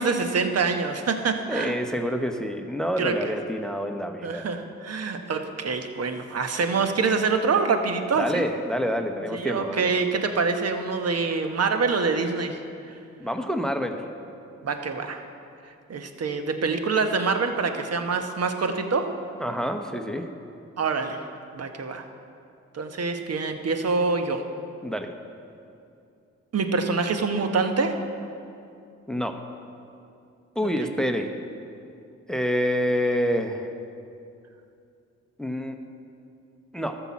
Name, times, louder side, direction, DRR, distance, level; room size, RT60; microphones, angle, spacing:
voice 1, 0.0-1.7 3.0-3.1 4.2-8.5 9.3-12.6 12.9-13.0 14.6-15.2 15.9-19.1 20.8-21.2 21.5-22.0 22.7-24.4 26.5-28.0 30.8-30.9, right 4 dB, 55° right, 6 dB, 1.1 m, -25 dB
voice 2, 1.5-4.4 8.2-9.9 13.2-14.0 19.4-20.3 24.8-25.1 29.1-29.4 30.5-31.3 32.3-33.7 35.4-35.8 36.7-37.0, equal, ahead, 6 dB, 1.0 m, -27 dB
13.0 x 6.0 x 7.3 m, 2.6 s
supercardioid pair, 50°, 30 cm